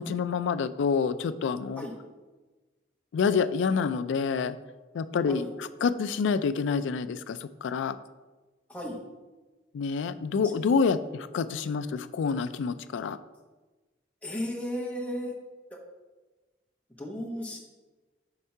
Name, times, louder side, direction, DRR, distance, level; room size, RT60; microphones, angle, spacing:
voice 1, 0.0-1.9 3.1-4.6 4.9-8.0 9.7-13.2, left 5 dB, 85° left, 12 dB, 0.3 m, -27 dB
voice 2, 14.2-15.3 17.0-17.6, equal, 10° left, -2 dB, 0.9 m, -34 dB
5.7 x 3.6 x 5.5 m, 1.2 s
head